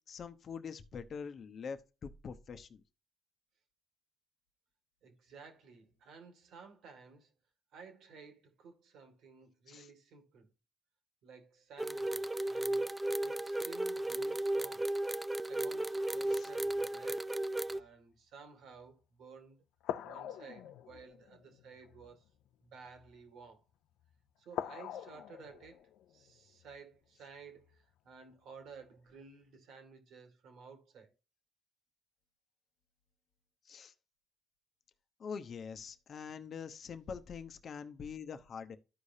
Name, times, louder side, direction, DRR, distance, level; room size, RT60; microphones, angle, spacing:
voice 1, 0.1-2.8 9.7-9.9 16.3-16.5 33.6-33.9 35.2-38.8, left 6 dB, 55° left, 0.8 m, -44 dB
voice 2, 5.0-7.3 7.7-10.5 11.2-12.9 13.2-14.9 15.4-17.3 17.7-19.6 20.0-22.3 22.6-23.6 24.4-31.1, right 5 dB, 80° right, 2.1 m, -54 dB
sound 1, 11.8-17.8, right 1 dB, 10° right, 0.4 m, -35 dB
sound 2, 15.8-17.1 17.6-17.9 18.7-18.9 19.8-23.4 23.9-24.2 24.5-28.0 28.7-28.8, left 10 dB, 90° left, 0.5 m, -46 dB
13.5 x 4.9 x 2.7 m
cardioid pair, 90°, 0 cm